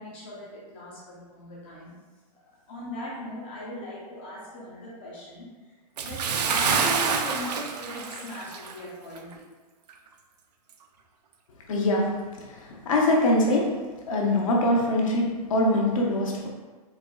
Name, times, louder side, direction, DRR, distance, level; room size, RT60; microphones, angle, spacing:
voice 1, 0.0-1.9 2.7-5.5 6.0-9.4, left 1 dB, 20° left, -6 dB, 0.4 m, -39 dB
Bathtub (filling or washing) / Splash splatter, 6.0-8.8 9.2-9.3 9.9-10.0, right 5 dB, 85° right, 0.4 m, -27 dB
voice 2, 11.7-12.1 12.4-13.7 14.1-16.5, left 1 dB, 55° left, -1 dB, 0.7 m, -23 dB
4.2 x 2.2 x 2.2 m, 1.3 s
hypercardioid pair, 170°, 20 cm